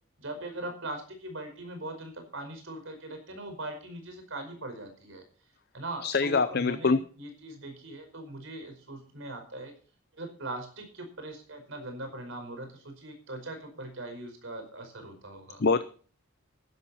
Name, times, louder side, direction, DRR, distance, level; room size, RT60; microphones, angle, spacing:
voice 1, 0.2-5.2 5.7-9.7 10.1-15.6, right 2 dB, 65° right, 5 dB, 5.1 m, -40 dB
voice 2, 6.0-7.0 15.6-15.8, left 4 dB, 50° left, 12 dB, 0.6 m, -24 dB
14.5 x 12.0 x 4.3 m, 0.42 s
head